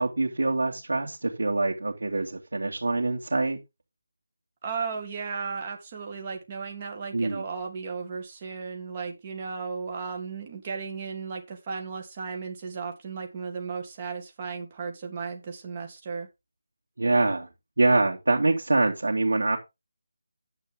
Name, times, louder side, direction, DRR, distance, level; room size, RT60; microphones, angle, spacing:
voice 1, 0.0-3.6 7.1-7.4 17.0-17.5 17.8-19.6, right 2 dB, 80° right, 2.5 m, -25 dB
voice 2, 4.6-16.3, right 5 dB, 20° right, 2.1 m, -35 dB
10.0 x 7.9 x 3.8 m
figure-of-eight pair, 175°, 0 cm